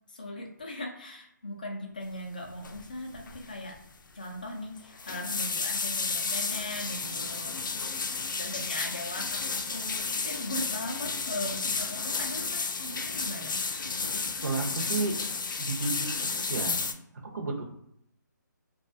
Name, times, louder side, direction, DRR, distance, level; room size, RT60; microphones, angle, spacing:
voice 1, 0.1-3.8 4.1-7.6 8.3-13.6, left 1 dB, 25° left, 2 dB, 0.3 m, -39 dB
sound 1, 2.6-2.9 3.1-3.5 3.7-3.8 4.8-16.9, left 4 dB, 85° left, 0.4 m, -32 dB
voice 2, 14.4-15.2 15.6-16.8 17.3-17.6, right 3 dB, 65° right, 0 dB, 0.7 m, -32 dB
2.5 x 2.3 x 2.5 m, 0.74 s
hypercardioid pair, 180°, 10 cm